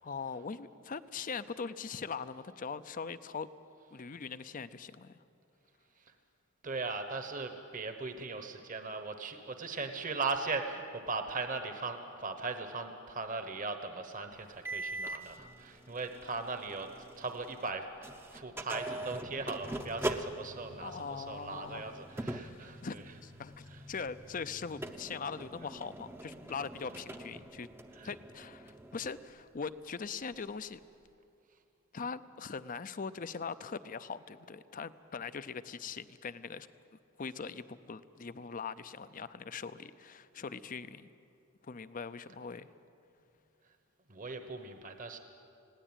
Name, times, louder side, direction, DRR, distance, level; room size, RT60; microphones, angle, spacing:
voice 1, 0.0-3.5 3.9-5.2 20.8-21.9 22.3-27.7 28.0-30.8 31.9-36.7 37.2-41.1 41.6-42.7, left 5 dB, 40° left, 13 dB, 0.5 m, -41 dB
voice 2, 6.6-17.9 18.3-23.0 23.7-23.8 27.9-28.1 44.1-45.2, right 3 dB, 40° right, 7 dB, 1.1 m, -39 dB
sound 1, 14.7-17.7 18.0-29.2, right 1 dB, 10° right, 0.7 m, -43 dB
20.5 x 16.5 x 9.0 m, 2.6 s
head